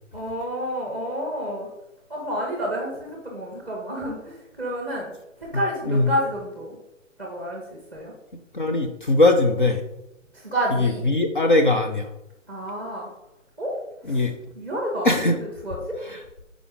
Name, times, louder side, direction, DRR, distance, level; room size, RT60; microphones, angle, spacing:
voice 1, 0.1-1.7 2.1-5.1 5.4-6.8 7.2-8.1 10.3-11.1 12.5-13.1 13.6-13.7 14.0-14.3 14.5-15.2 15.6-16.0, equal, 5° left, -1 dB, 0.9 m, -29 dB
voice 2, 8.5-9.8 10.7-12.1 14.1-14.3 15.0-15.4 16.1-16.2, left 2 dB, 40° left, 3 dB, 0.6 m, -20 dB
6.8 x 4.9 x 3.5 m, 0.87 s
figure-of-eight pair, 150°, 39 cm